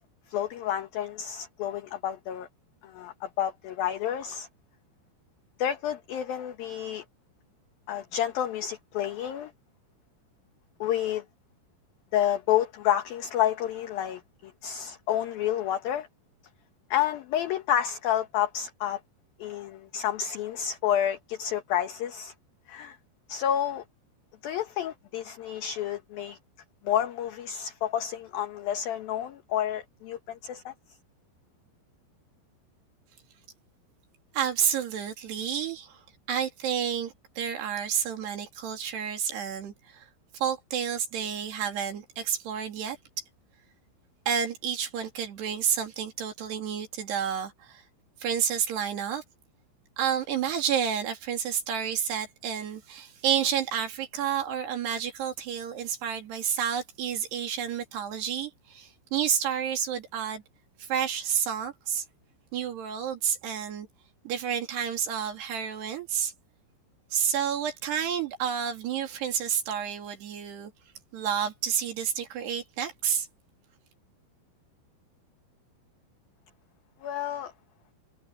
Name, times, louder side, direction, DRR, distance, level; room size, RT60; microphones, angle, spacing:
voice 1, 0.3-2.5 2.8-4.5 5.6-7.0 7.9-9.5 10.8-11.2 12.1-16.1 16.9-19.0 19.4-22.3 22.7-23.0 23.3-23.8 24.4-26.4 26.8-30.7 77.0-77.5, left 10 dB, 65° left, 2.8 m, -29 dB
voice 2, 34.3-43.0 44.3-47.8 48.2-49.2 50.0-60.4 60.8-62.0 62.5-63.9 64.2-66.3 67.1-70.7 71.1-73.3, right 8 dB, 65° right, 4.5 m, -30 dB
omnidirectional pair, 5.3 m